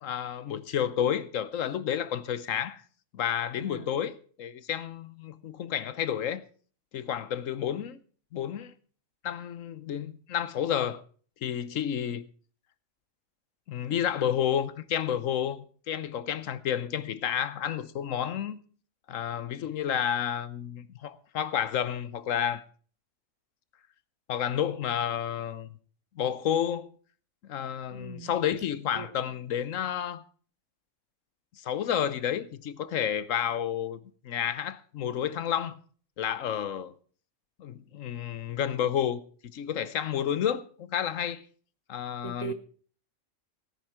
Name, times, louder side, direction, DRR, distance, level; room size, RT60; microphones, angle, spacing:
voice 1, 0.0-2.8 3.1-6.4 6.9-8.0 8.3-8.7 9.2-11.0 11.4-12.2 13.7-18.6 19.1-22.6 24.3-25.7 26.2-26.9 27.5-30.2 31.6-34.0 34.2-35.8 36.2-36.9 37.6-39.2 39.5-41.4 41.9-42.5, left 9 dB, 85° left, 1.2 m, -30 dB
voice 2, 3.5-4.0 27.9-28.3 28.9-29.1 42.2-42.5, right 5 dB, 35° right, 1.3 m, -39 dB
17.5 x 9.8 x 4.5 m
omnidirectional pair, 1.3 m